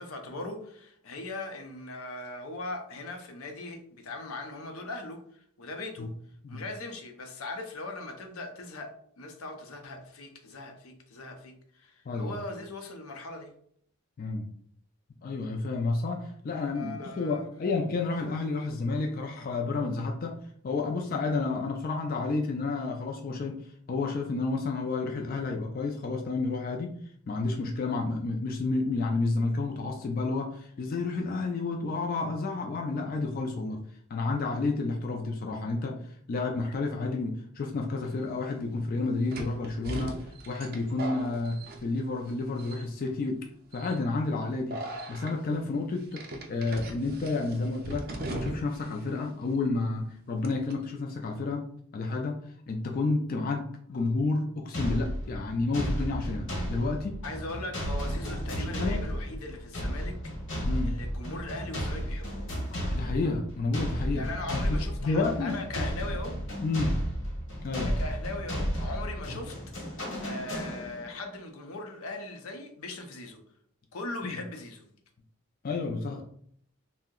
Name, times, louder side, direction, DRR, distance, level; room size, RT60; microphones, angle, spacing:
voice 1, 0.0-6.1 6.5-13.5 16.7-17.4 57.2-60.2 60.8-62.5 64.1-66.4 67.7-69.5 70.2-73.4 73.9-74.8, left 2 dB, 85° left, 4 dB, 0.6 m, -39 dB
voice 2, 12.1-12.4 14.2-14.5 15.2-27.0 27.3-33.8 34.1-43.4 43.7-44.8 45.1-46.2 46.5-51.7 51.9-52.4 52.7-57.2 58.5-59.1 60.6-61.0 62.9-64.3 64.5-65.9 66.6-67.0 67.6-67.9 74.2-74.4 75.6-76.2, left 3 dB, 45° left, 2 dB, 0.3 m, -30 dB
sound 1, 38.0-38.1 39.3-42.3 42.6-43.1 43.7-44.0 44.7-45.3 46.1-48.9 49.1-49.2 50.4-50.7, right 2 dB, 45° right, 0.4 m, -39 dB
sound 2, 54.7-71.2, equal, 60° left, 1.1 m, -33 dB
2.6 x 2.1 x 3.6 m, 0.64 s
head